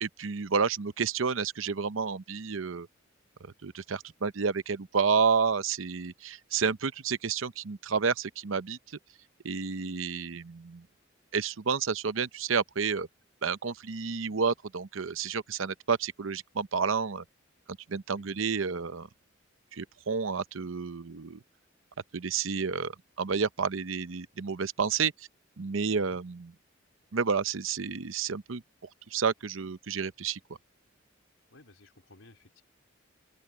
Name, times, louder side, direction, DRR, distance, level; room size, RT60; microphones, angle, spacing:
voice 1, 0.0-2.9 3.6-9.0 9.4-10.9 11.3-13.1 13.4-17.2 17.9-19.1 19.7-21.4 22.1-25.3 25.6-26.5 27.1-28.6 29.1-30.4, right 5 dB, 85° right, 0.7 m, -30 dB
voice 2, 18.1-18.5 26.1-26.2 31.5-32.6, left 2 dB, 85° left, 3.6 m, -56 dB
open air
head